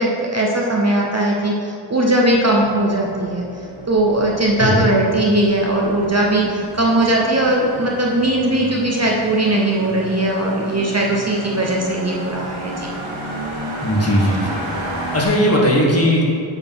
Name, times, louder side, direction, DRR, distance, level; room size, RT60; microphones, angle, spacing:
voice 1, 0.0-12.9, right 1 dB, 30° right, -2 dB, 0.8 m, -19 dB
sound 1, 2.2-15.2, right 1 dB, 70° right, 1.6 m, -32 dB
voice 2, 13.8-14.6 15.1-16.2, equal, 30° left, -4 dB, 1.7 m, -17 dB
8.4 x 4.1 x 5.9 m, 2.5 s
wide cardioid pair, 100°, 49 cm